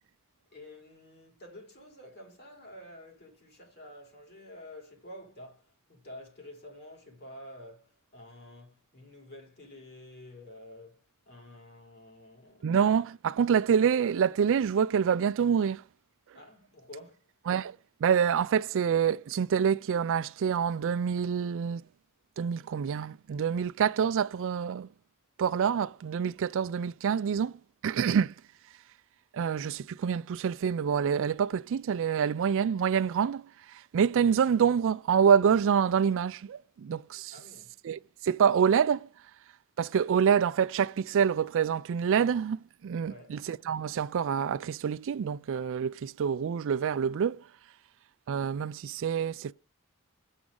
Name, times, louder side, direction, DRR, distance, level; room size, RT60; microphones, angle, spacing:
voice 1, 0.5-12.8 16.3-17.3 37.3-37.8 43.0-43.4, left 1 dB, 50° left, 3.4 m, -49 dB
voice 2, 12.6-15.8 17.5-17.8 18.0-21.8 22.4-24.9 25.4-27.6 27.8-28.3 29.3-37.3 37.8-39.1 39.8-47.4 48.3-49.5, right 7 dB, 65° right, 0.4 m, -26 dB
7.8 x 7.2 x 3.8 m
head